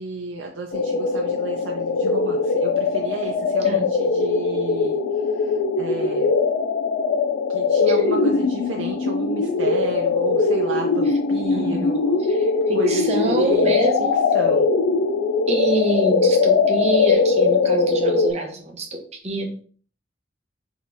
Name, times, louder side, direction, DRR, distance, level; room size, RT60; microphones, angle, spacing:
voice 1, 0.0-5.0 5.3-6.3 7.5-12.2 12.7-14.1 14.3-14.7, right 3 dB, 85° right, 1 dB, 0.5 m, -32 dB
sound 1, 0.7-18.3, left 4 dB, 85° left, 0.4 m, -21 dB
voice 2, 11.5-11.9 12.4-14.2 15.5-19.6, right 1 dB, 35° right, 2 dB, 0.9 m, -25 dB
4.3 x 3.0 x 3.4 m, 0.44 s
head